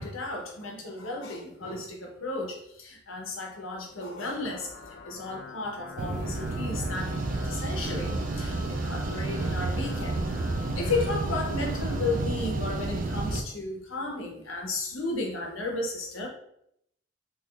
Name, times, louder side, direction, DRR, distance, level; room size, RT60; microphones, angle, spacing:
voice 1, 0.0-4.7 5.0-10.2 10.7-16.3, left 2 dB, 85° left, 1 dB, 0.8 m, -34 dB
sound 1, 4.3-12.2, left 4 dB, 50° left, 0.4 m, -45 dB
sound 2, 6.0-13.4, right 2 dB, 40° right, 0.3 m, -30 dB
2.8 x 2.3 x 3.7 m, 0.73 s
head